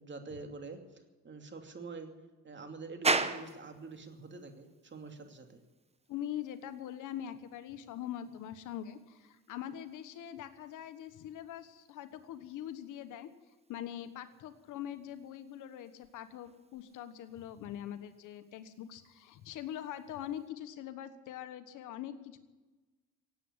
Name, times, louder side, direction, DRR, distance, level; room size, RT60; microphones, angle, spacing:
voice 1, 0.0-2.1 2.4-5.6, right 4 dB, 40° right, 5 dB, 2.6 m, -46 dB
sound 1, 3.0-20.5, right 3 dB, 20° right, 1.1 m, -43 dB
voice 2, 6.1-13.3 13.7-22.4, left 11 dB, 90° left, 10 dB, 1.3 m, -43 dB
17.0 x 8.6 x 9.6 m, 1.2 s
cardioid pair, 90°, 30 cm